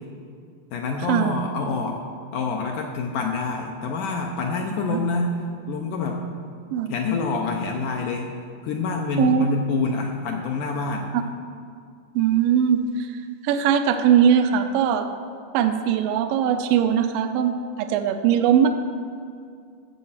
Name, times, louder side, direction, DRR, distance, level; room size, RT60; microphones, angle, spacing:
voice 1, 0.7-2.0 2.3-5.4 5.7-6.2 6.9-8.3 8.6-11.1, left 4 dB, 80° left, 2 dB, 2.0 m, -26 dB
voice 2, 9.2-9.6 11.1-11.2 12.2-13.1 13.4-15.1 15.5-18.7, right 8 dB, 80° right, 7 dB, 2.2 m, -20 dB
11.0 x 7.5 x 7.2 m, 2.3 s
omnidirectional pair, 4.3 m